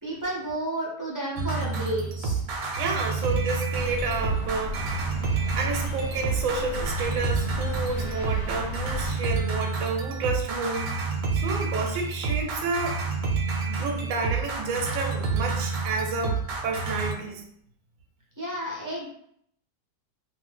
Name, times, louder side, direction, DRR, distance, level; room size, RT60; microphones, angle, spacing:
voice 1, 0.0-2.4 18.4-19.1, right 1 dB, 25° right, -6 dB, 0.4 m, -31 dB
sound 1, 1.4-17.1, right 4 dB, 85° right, 1.2 m, -29 dB
voice 2, 2.8-5.0 5.5-13.0 13.7-17.4, right 3 dB, 65° right, 1 dB, 0.9 m, -30 dB
sound 2, 3.7-9.1, left 2 dB, 70° left, 1.0 m, -35 dB
2.7 x 2.3 x 3.2 m, 0.68 s
omnidirectional pair, 1.8 m